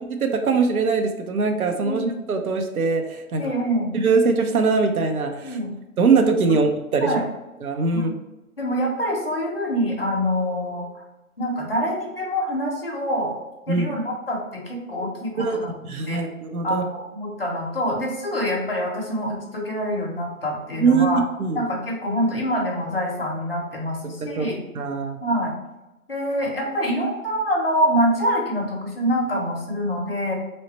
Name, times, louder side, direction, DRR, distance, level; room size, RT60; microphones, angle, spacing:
voice 1, 0.1-3.4 3.9-5.6 6.0-7.1 7.6-8.1 13.7-13.9 15.4-15.6 15.8-16.8 20.8-21.6 24.2-24.5 24.7-25.2, right 4 dB, 75° right, 5 dB, 0.7 m, -22 dB
voice 2, 1.8-2.1 3.4-3.9 5.4-5.7 6.5-6.6 7.0-7.2 7.9-8.1 8.6-11.0 11.4-13.4 13.7-15.7 16.1-16.2 16.6-21.2 21.5-24.6 25.2-25.5 26.1-30.3, equal, 40° left, -1 dB, 0.7 m, -25 dB
3.1 x 2.0 x 4.0 m, 0.99 s
hypercardioid pair, 175°, 44 cm